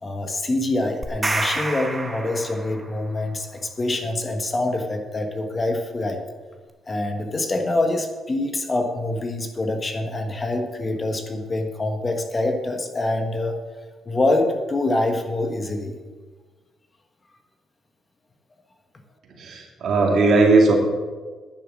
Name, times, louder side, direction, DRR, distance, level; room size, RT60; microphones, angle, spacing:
voice 1, 0.0-6.2 6.9-13.5 14.1-15.9, left 2 dB, 30° left, 5 dB, 1.3 m, -25 dB
sound 1, 1.0-3.0, right 2 dB, 15° right, 1.2 m, -28 dB
voice 2, 19.4-20.7, right 3 dB, 65° right, 1 dB, 2.4 m, -17 dB
10.5 x 7.0 x 6.3 m, 1.4 s
cardioid pair, 90°, 0 cm